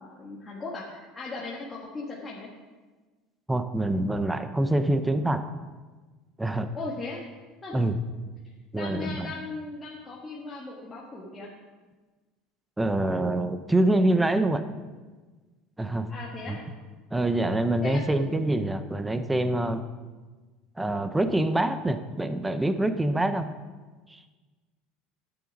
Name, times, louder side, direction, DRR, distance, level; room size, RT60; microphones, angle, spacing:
voice 1, 0.0-2.5 6.5-7.2 7.6-7.8 8.7-11.5 16.1-16.6 17.8-18.6, left 3 dB, 15° left, -5 dB, 1.6 m, -38 dB
voice 2, 3.5-5.4 6.4-6.7 7.7-8.0 8.7-9.3 12.8-14.6 15.8-16.1 16.5-16.6 17.1-19.8 20.8-23.5 24.1-24.2, right 1 dB, 10° right, 10 dB, 0.7 m, -25 dB
11.0 x 8.8 x 5.3 m, 1.3 s
supercardioid pair, 135°, 0 cm